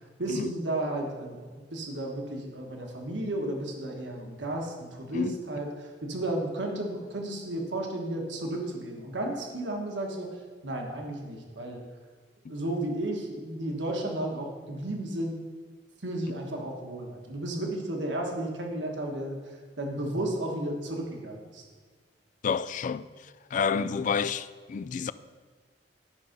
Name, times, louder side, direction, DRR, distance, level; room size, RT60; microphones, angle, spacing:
voice 1, 0.2-10.3 10.6-11.8 12.5-15.4 16.0-19.4 19.8-21.6 23.7-24.0, right 1 dB, 90° right, 1.4 m, -33 dB
voice 2, 22.4-25.1, left 6 dB, 45° left, 0.3 m, -30 dB
10.5 x 5.5 x 5.2 m
head